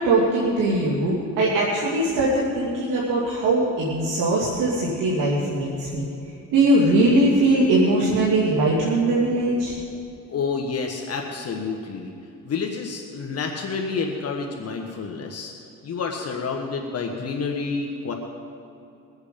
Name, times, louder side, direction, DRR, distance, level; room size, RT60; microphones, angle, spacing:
voice 1, 0.0-6.0 6.5-9.7, right 2 dB, 80° right, -6 dB, 2.5 m, -21 dB
voice 2, 10.3-12.1 12.4-15.5 15.8-18.1, left 5 dB, 50° left, 2 dB, 1.5 m, -29 dB
22.0 x 8.1 x 5.3 m, 2.6 s
cardioid pair, 85°, 31 cm